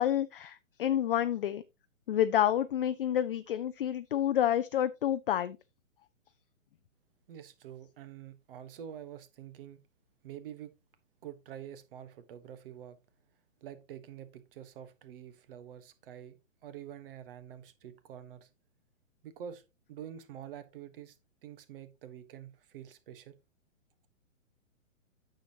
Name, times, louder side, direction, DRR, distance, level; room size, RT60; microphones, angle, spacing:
voice 1, 0.0-1.6 2.1-5.6, left 11 dB, 45° left, 0.5 m, -29 dB
voice 2, 7.3-9.8 10.2-10.7 11.2-13.0 13.6-16.4 16.6-18.5 19.2-19.6 19.9-21.1 21.4-23.4, right 9 dB, 45° right, 1.3 m, -47 dB
9.2 x 6.9 x 2.9 m
figure-of-eight pair, 130°, 40 cm